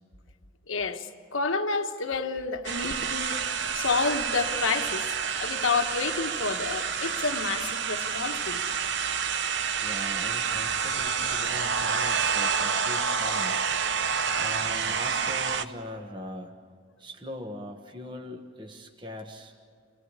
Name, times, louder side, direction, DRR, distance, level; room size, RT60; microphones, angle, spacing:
voice 1, 0.7-3.4 3.7-8.6, left 4 dB, 85° left, 6 dB, 1.4 m, -29 dB
sound 1, 2.6-15.6, right 6 dB, 60° right, 0.9 m, -28 dB
voice 2, 9.8-13.7 14.4-16.5 17.0-19.5, left 1 dB, 25° right, 3 dB, 1.4 m, -41 dB
27.5 x 18.5 x 8.3 m, 2.1 s
head